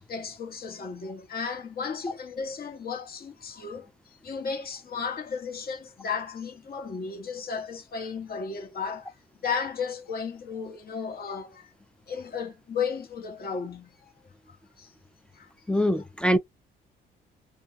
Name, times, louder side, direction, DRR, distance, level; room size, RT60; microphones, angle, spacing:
voice 1, 0.1-9.1 9.4-11.7 12.1-14.0 14.5-14.9 15.3-15.8 16.3-16.4, left 5 dB, 50° left, 1.1 m, -34 dB
voice 2, 15.7-16.4, equal, 5° left, 0.4 m, -23 dB
2.3 x 2.2 x 2.8 m
cardioid pair, 90°, 20 cm